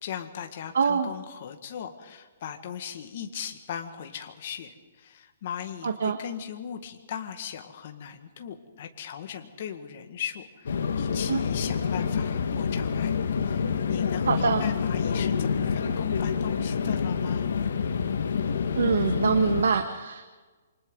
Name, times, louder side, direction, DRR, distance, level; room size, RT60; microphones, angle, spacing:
voice 1, 0.0-17.5, left 8 dB, 45° left, 5 dB, 1.8 m, -38 dB
voice 2, 0.7-1.1 5.8-6.2 11.3-11.4 14.3-14.6 18.7-20.2, right 6 dB, 80° right, 6 dB, 1.5 m, -24 dB
sound 1, 10.7-19.6, left 6 dB, 75° left, 1.7 m, -27 dB
28.5 x 25.0 x 3.9 m, 1.3 s
hypercardioid pair, 170°, 0 cm